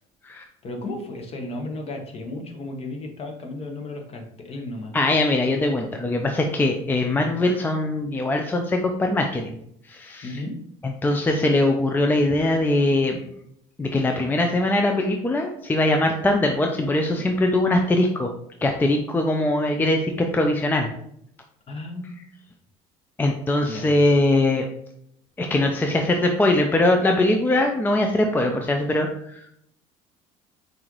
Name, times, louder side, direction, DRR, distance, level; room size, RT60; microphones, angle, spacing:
voice 1, 0.6-4.9 10.2-10.6 21.7-22.2 23.6-24.0, left 2 dB, 40° left, 3 dB, 1.0 m, -34 dB
voice 2, 4.9-9.6 9.9-10.4 10.8-13.2 13.8-18.3 18.6-20.9 23.2-24.6 25.4-29.6, left 1 dB, 10° left, 3 dB, 0.4 m, -21 dB
5.5 x 2.6 x 3.0 m, 0.72 s
supercardioid pair, 100°, 16 cm